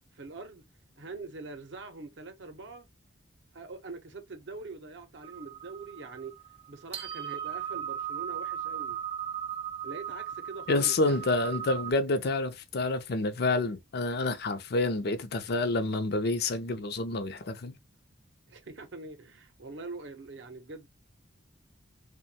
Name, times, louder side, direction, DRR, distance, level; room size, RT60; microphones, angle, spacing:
voice 1, 0.2-0.6 1.0-2.9 3.5-6.4 6.7-9.0 9.8-11.3 11.9-12.0 18.5-20.9, right 3 dB, 60° right, 0.6 m, -43 dB
sound 1, 5.2-11.9, right 9 dB, 30° right, 0.3 m, -37 dB
voice 2, 10.7-17.7, left 2 dB, 55° left, 0.5 m, -28 dB
2.9 x 2.2 x 2.7 m
head